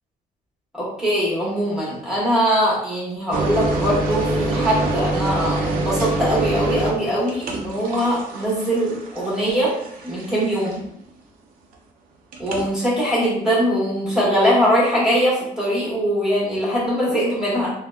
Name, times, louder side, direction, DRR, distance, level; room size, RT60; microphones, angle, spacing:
voice 1, 0.7-9.7 10.0-10.8 12.4-17.7, equal, 5° right, -6 dB, 1.1 m, -21 dB
sound 1, 3.3-11.0 12.3-12.7, right 2 dB, 75° right, 0.5 m, -26 dB
3.6 x 2.0 x 2.3 m, 0.72 s
cardioid pair, 150°, 15 cm